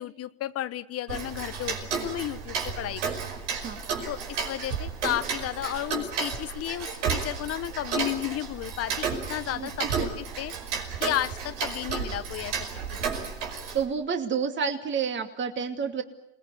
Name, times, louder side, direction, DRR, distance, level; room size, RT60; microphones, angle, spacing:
voice 1, 0.0-3.2 4.1-10.1 10.4-10.5 11.0-13.3, left 13 dB, 45° left, 13 dB, 1.0 m, -33 dB
Tick-tock, 1.1-13.8, right 6 dB, 80° right, 5.2 m, -32 dB
voice 2, 3.3-3.8 9.5-9.7 9.9-10.1 13.7-16.0, right 6 dB, 35° right, 5 dB, 2.6 m, -29 dB
28.5 x 20.0 x 9.7 m, 0.89 s
hypercardioid pair, 95°, 35 cm